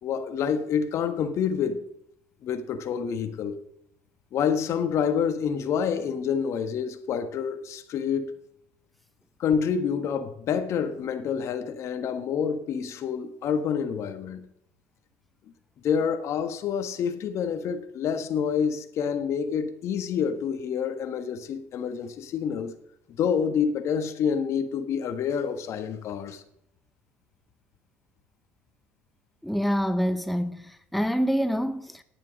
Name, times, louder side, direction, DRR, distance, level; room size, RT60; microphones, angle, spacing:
voice 1, 0.0-1.8 2.4-3.6 4.3-8.3 9.4-14.5 15.8-22.7 23.2-26.4, left 7 dB, 55° left, 1.4 m, -27 dB
voice 2, 29.4-32.0, equal, ahead, 0.6 m, -26 dB
10.5 x 9.2 x 6.4 m
supercardioid pair, 85°, 6 cm